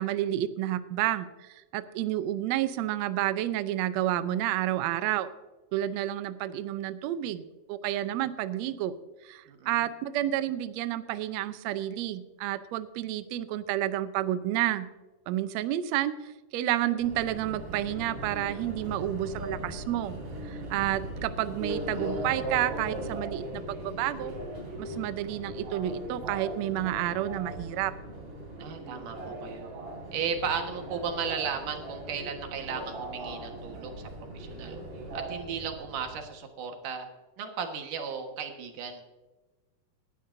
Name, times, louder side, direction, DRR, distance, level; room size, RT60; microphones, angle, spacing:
voice 1, 0.0-5.3 5.7-8.9 9.2-14.9 15.3-20.2 20.4-24.3 24.8-27.9, right 13 dB, 90° right, 12 dB, 1.5 m, -30 dB
voice 2, 9.5-9.9 21.7-22.3 28.6-29.7 30.1-34.1 34.3-34.8 35.1-37.1 37.4-39.0, right 6 dB, 70° right, 4 dB, 3.0 m, -35 dB
Subway metro underground, 17.0-36.2, right 1 dB, 45° right, 4.2 m, -39 dB
19.0 x 12.0 x 2.6 m, 1.2 s
omnidirectional pair, 4.0 m